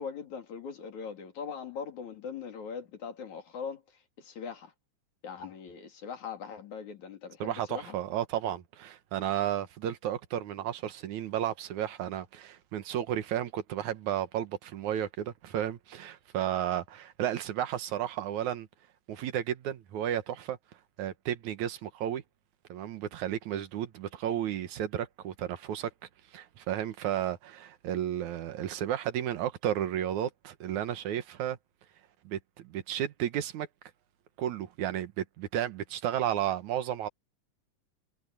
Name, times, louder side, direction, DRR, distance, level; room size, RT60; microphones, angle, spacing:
voice 1, 0.0-4.7 5.2-8.0, left 6 dB, 75° left, 4.3 m, -41 dB
voice 2, 7.4-18.7 19.1-20.6 21.0-22.2 22.7-25.9 26.3-31.6 32.2-33.7 34.4-37.1, right 11 dB, 85° right, 2.6 m, -33 dB
omnidirectional pair, 3.3 m